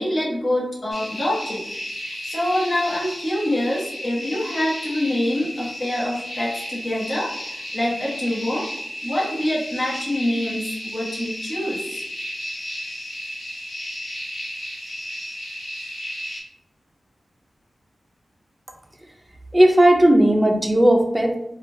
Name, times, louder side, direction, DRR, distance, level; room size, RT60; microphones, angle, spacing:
voice 1, 0.0-1.6 2.0-8.7 9.0-12.0, left 1 dB, 55° left, -6 dB, 1.0 m, -25 dB
sound 1, 0.9-16.4, equal, 90° left, 1.0 m, -33 dB
voice 2, 19.5-21.4, right 1 dB, 10° right, 3 dB, 0.5 m, -15 dB
2.9 x 2.3 x 3.2 m, 0.80 s
wide cardioid pair, 85°, 0 cm